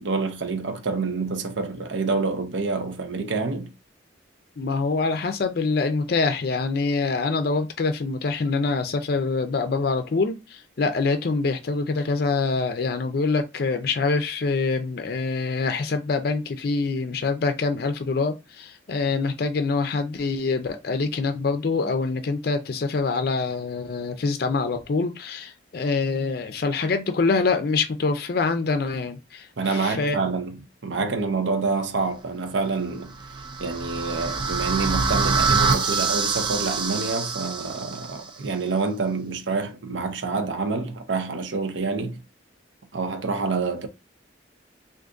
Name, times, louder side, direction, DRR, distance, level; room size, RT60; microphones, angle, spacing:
voice 1, 0.0-3.7 29.6-33.1 33.6-42.2 42.9-43.9, right 4 dB, 80° right, 0.7 m, -27 dB
voice 2, 4.6-30.2, left 4 dB, 55° left, 0.4 m, -25 dB
sound 1, 33.1-38.2, right 4 dB, 25° right, 0.5 m, -25 dB
2.5 x 2.5 x 3.6 m
head